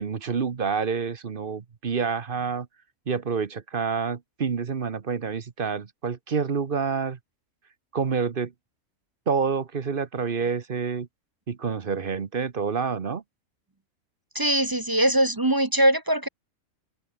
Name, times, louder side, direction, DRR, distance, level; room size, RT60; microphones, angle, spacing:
voice 1, 0.0-2.7 3.1-7.2 7.9-8.5 9.3-11.1 11.5-13.2, right 5 dB, 40° right, 1.1 m, -28 dB
voice 2, 14.3-16.3, right 1 dB, 20° right, 0.7 m, -22 dB
omnidirectional pair, 1.5 m